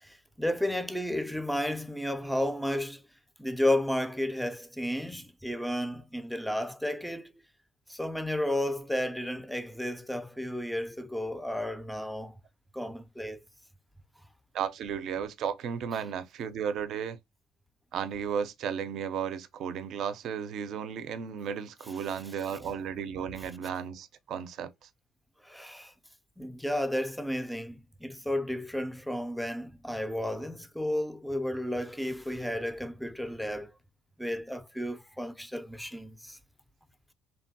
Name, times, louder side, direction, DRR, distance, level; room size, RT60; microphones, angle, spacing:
voice 1, 0.0-3.0 3.4-7.3 7.9-12.4 12.7-13.5 22.6-22.7 25.4-25.9 26.4-33.7 34.2-36.4, left 1 dB, ahead, 0.3 m, -32 dB
voice 2, 14.5-17.2 17.9-24.7, right 7 dB, 65° right, 0.4 m, -34 dB
3.0 x 2.2 x 2.6 m
cardioid pair, 105°, 0 cm